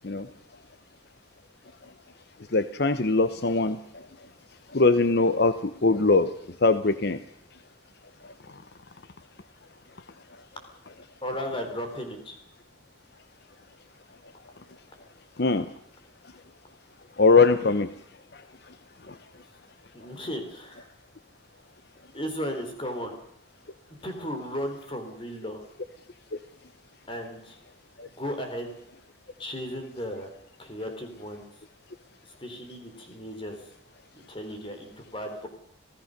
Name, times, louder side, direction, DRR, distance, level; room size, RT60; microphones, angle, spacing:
voice 1, 2.5-3.8 4.7-5.6 5.8-6.3 6.6-7.2 15.4-15.7 17.2-17.9, left 3 dB, 55° left, 11 dB, 0.9 m, -21 dB
voice 2, 11.2-12.4 19.9-20.9 22.1-23.2 24.0-25.6 27.1-27.6 28.2-28.7 29.4-30.3 30.6-31.5 32.2-33.6 34.1-35.5, equal, 25° left, 5 dB, 4.1 m, -35 dB
26.5 x 17.0 x 6.7 m, 0.71 s
head